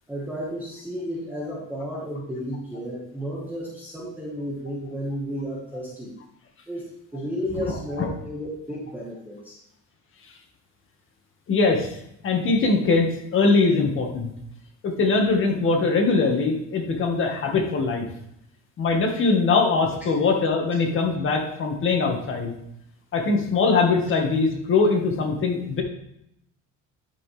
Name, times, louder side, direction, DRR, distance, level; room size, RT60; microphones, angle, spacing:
voice 1, 0.1-6.1 6.7-6.8 7.1-9.6, equal, 5° right, -5 dB, 1.6 m, -32 dB
voice 2, 11.5-12.0 12.2-14.3 14.8-18.0 18.8-22.5 23.1-25.8, left 4 dB, 40° left, 2 dB, 1.8 m, -22 dB
10.5 x 6.0 x 3.4 m, 0.76 s
cardioid pair, 140°, 30 cm